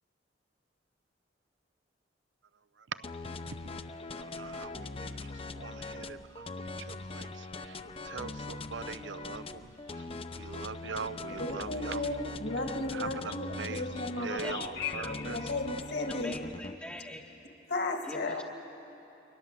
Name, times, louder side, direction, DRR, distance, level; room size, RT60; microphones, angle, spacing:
sound 1, 3.0-16.7, left 3 dB, 30° left, 0.7 m, -41 dB
voice 1, 4.1-10.1 10.3-12.1 12.9-13.9 14.2-15.5, right 5 dB, 75° right, 15 dB, 0.6 m, -42 dB
voice 2, 11.4-16.4 17.7-18.4, left 2 dB, 60° left, 4 dB, 2.0 m, -34 dB
voice 3, 14.4-15.1 16.1-17.3 18.0-18.4, left 1 dB, 10° left, -2 dB, 0.9 m, -44 dB
29.0 x 22.5 x 7.5 m, 3.0 s
head